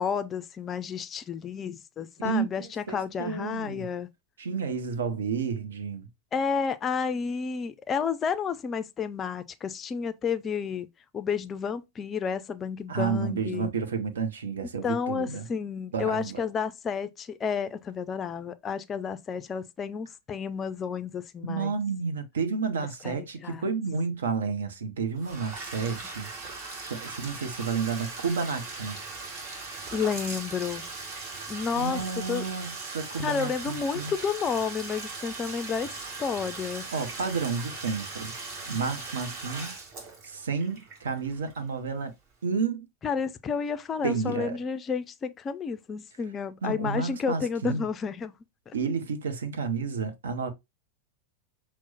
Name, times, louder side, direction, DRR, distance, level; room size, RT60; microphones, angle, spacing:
voice 1, 0.0-4.1 6.3-10.9 11.1-13.7 14.6-21.7 23.0-23.6 29.9-30.8 31.5-32.4 33.2-35.9 36.2-36.8 43.0-48.3 48.7-48.8, left 6 dB, 25° left, 0.4 m, -31 dB
voice 2, 2.2-3.9 4.4-6.1 12.9-15.5 15.9-16.4 21.5-26.3 26.8-29.0 31.7-34.1 36.9-38.3 38.7-39.8 40.2-42.1 42.4-42.9 44.0-44.6 46.6-47.8 48.7-50.5, right 5 dB, 65° right, 0.8 m, -31 dB
Bathtub (filling or washing), 25.2-41.9, right 3 dB, 40° right, 1.7 m, -39 dB
6.0 x 2.1 x 4.0 m
figure-of-eight pair, 90°, 0 cm